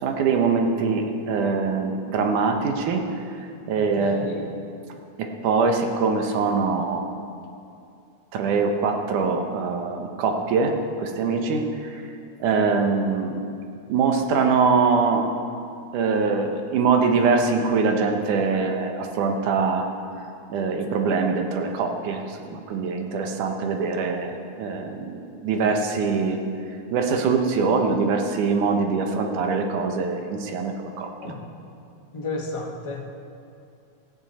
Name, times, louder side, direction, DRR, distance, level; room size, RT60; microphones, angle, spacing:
voice 1, 0.0-3.0 3.7-4.2 5.2-7.1 8.3-12.0 12.4-13.4 13.9-15.3 15.9-19.9 20.5-26.4 26.9-31.3, right 4 dB, 90° right, 4 dB, 2.7 m, -23 dB
voice 2, 3.8-4.4 31.2-31.4 32.1-33.0, left 3 dB, 40° left, -1 dB, 0.4 m, -32 dB
17.0 x 14.5 x 4.3 m, 2.5 s
omnidirectional pair, 3.5 m